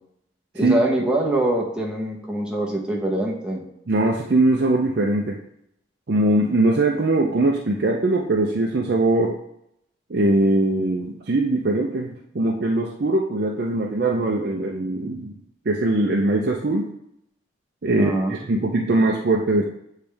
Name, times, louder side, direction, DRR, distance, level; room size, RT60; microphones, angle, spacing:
voice 1, 0.5-3.6 18.0-18.4, right 1 dB, 5° right, -3 dB, 0.8 m, -24 dB
voice 2, 3.9-5.4 6.1-9.3 10.1-15.4 15.7-16.9 17.8-19.6, right 2 dB, 55° right, -1 dB, 0.5 m, -21 dB
8.5 x 3.3 x 3.3 m, 0.76 s
head